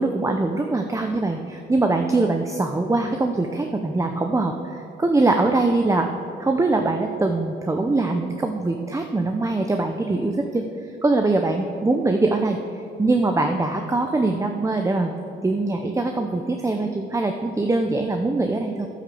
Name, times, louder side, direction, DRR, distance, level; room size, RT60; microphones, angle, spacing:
voice 1, 0.0-6.1 6.4-10.6 11.0-12.6 13.0-15.1 15.4-18.9, right 2 dB, 15° right, 4 dB, 0.8 m, -22 dB
10.0 x 9.9 x 7.1 m, 2.6 s
cardioid pair, 90°, 20 cm